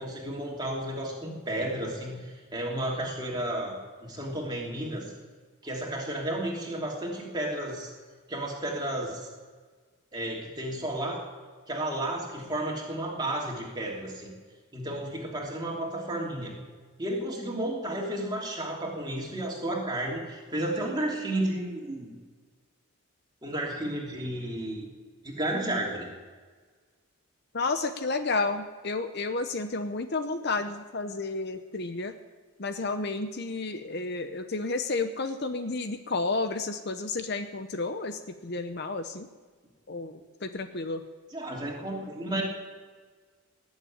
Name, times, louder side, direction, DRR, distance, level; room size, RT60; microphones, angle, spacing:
voice 1, 0.0-5.1 5.6-7.9 8.3-9.3 10.1-11.3 11.7-14.3 14.7-16.6 17.0-22.2 23.4-24.9 25.2-26.1 41.3-42.4, right 1 dB, 20° right, -2 dB, 3.0 m, -32 dB
voice 2, 27.5-32.2 32.6-39.3 39.9-41.0, left 3 dB, 50° left, 9 dB, 0.8 m, -31 dB
19.0 x 7.4 x 8.9 m, 1.5 s
head